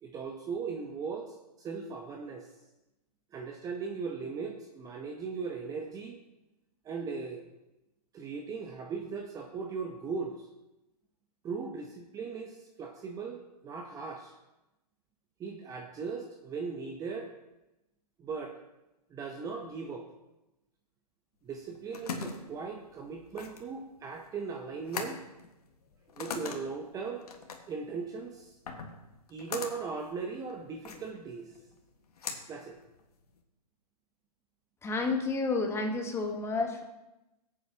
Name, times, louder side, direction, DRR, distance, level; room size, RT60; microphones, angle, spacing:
voice 1, 0.0-2.5 3.3-6.2 6.8-7.4 8.1-10.5 11.4-14.3 15.4-17.3 18.2-18.6 19.1-20.1 21.4-25.2 26.2-27.2 27.7-28.5 29.3-31.5 32.5-32.8, right 5 dB, 15° right, 3 dB, 0.8 m, -38 dB
sound 1, 21.5-33.4, left 5 dB, 70° left, 1.6 m, -43 dB
voice 2, 34.8-36.8, left 3 dB, 10° left, 3 dB, 1.2 m, -30 dB
17.5 x 8.6 x 2.9 m, 0.95 s
hypercardioid pair, 125°, 20 cm